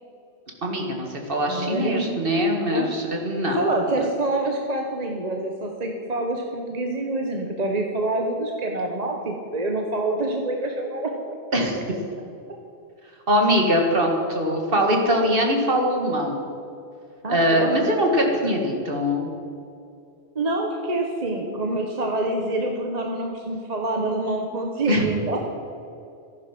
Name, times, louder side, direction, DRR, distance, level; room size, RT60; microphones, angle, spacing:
voice 1, 0.6-3.6 11.5-11.8 13.3-16.4 17.3-19.3 24.9-25.0, equal, 60° right, 1 dB, 2.2 m, -22 dB
voice 2, 1.5-2.1 2.7-2.9 3.5-11.7 17.2-17.8 20.3-25.4, right 2 dB, 40° right, 2 dB, 1.2 m, -26 dB
14.5 x 10.5 x 6.0 m, 2.5 s
omnidirectional pair, 1.1 m